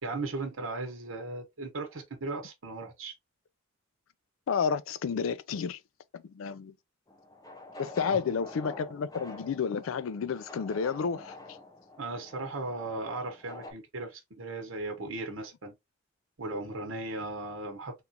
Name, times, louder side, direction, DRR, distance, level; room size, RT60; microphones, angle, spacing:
voice 1, 0.0-3.1 8.1-8.2 12.0-15.7 16.4-17.9, right 2 dB, 80° right, 1.0 m, -37 dB
voice 2, 4.5-5.8 6.1-6.7 7.8-11.3, left 6 dB, 75° left, 0.4 m, -31 dB
sound 1, 7.1-13.7, left 2 dB, 20° left, 0.5 m, -46 dB
3.6 x 2.4 x 2.7 m
head